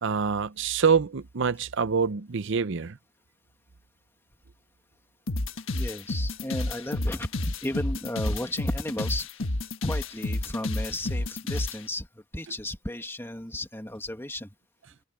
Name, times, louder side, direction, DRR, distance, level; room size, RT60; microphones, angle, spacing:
voice 1, 0.0-3.0, right 6 dB, 65° right, 0.7 m, -25 dB
sound 1, 5.3-11.8, left 2 dB, 80° left, 1.4 m, -30 dB
voice 2, 5.7-9.5 9.8-14.5, left 1 dB, 10° left, 2.3 m, -34 dB
head